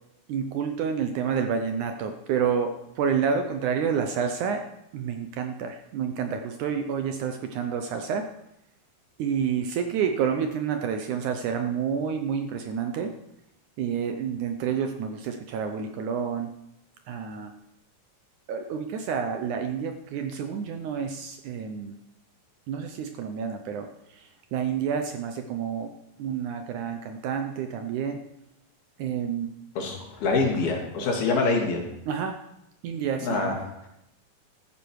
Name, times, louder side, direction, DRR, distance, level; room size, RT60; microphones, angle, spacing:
voice 1, 0.3-4.6 4.9-8.3 9.2-13.1 13.8-16.5 17.1-17.5 18.5-22.0 22.7-25.9 26.2-28.2 29.0-29.5 32.1-32.4 32.8-33.6, right 7 dB, 75° right, 6 dB, 1.9 m, -29 dB
voice 2, 29.8-31.8 33.2-33.5, left 3 dB, 85° left, 0 dB, 4.5 m, -25 dB
14.0 x 14.0 x 4.7 m, 0.84 s
omnidirectional pair, 4.2 m